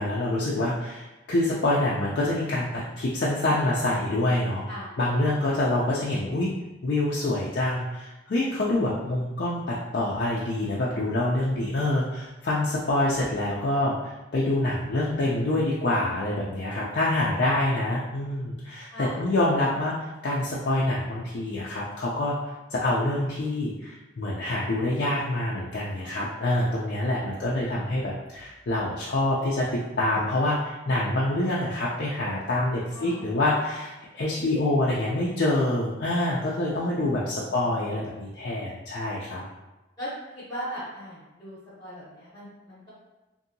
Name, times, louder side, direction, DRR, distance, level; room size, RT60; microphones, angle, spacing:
voice 1, 0.0-4.6 5.0-6.5 6.8-19.9 20.2-39.4, left 1 dB, 60° left, -6 dB, 0.4 m, -26 dB
voice 2, 18.9-19.2 32.9-33.2 40.0-42.9, equal, 20° left, -11 dB, 0.8 m, -39 dB
2.7 x 2.6 x 2.6 m, 1.0 s
head